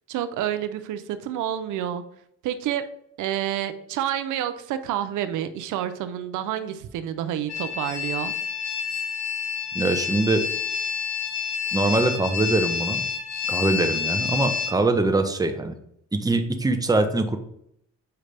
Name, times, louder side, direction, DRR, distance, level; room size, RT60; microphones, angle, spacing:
voice 1, 0.1-2.0 2.4-2.8 3.2-8.3, right 11 dB, 90° right, 11 dB, 0.6 m, -29 dB
sound 1, 7.5-14.7, left 7 dB, 60° left, 1.3 m, -28 dB
voice 2, 9.7-10.5 11.7-13.0 13.5-15.7 16.1-17.4, right 2 dB, 10° right, 6 dB, 0.8 m, -23 dB
6.8 x 4.9 x 3.3 m, 0.72 s
cardioid pair, 90°, 30 cm